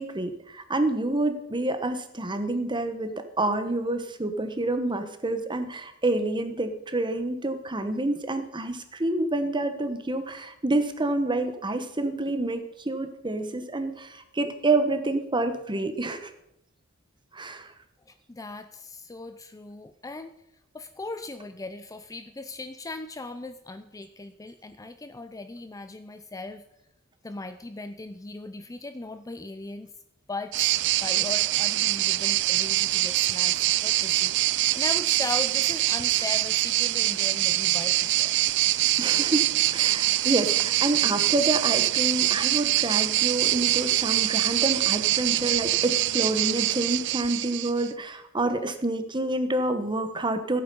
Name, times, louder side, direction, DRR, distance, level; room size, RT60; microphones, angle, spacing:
voice 1, 0.0-16.3 17.3-17.7 39.0-50.6, right 2 dB, 20° right, 8 dB, 1.2 m, -28 dB
voice 2, 18.1-20.3 20.7-26.6 27.2-29.9 30.3-38.3, left 3 dB, 15° left, 9 dB, 0.5 m, -38 dB
sound 1, 30.5-47.9, right 16 dB, 60° right, 0.4 m, -24 dB
15.5 x 8.8 x 5.4 m, 0.81 s
head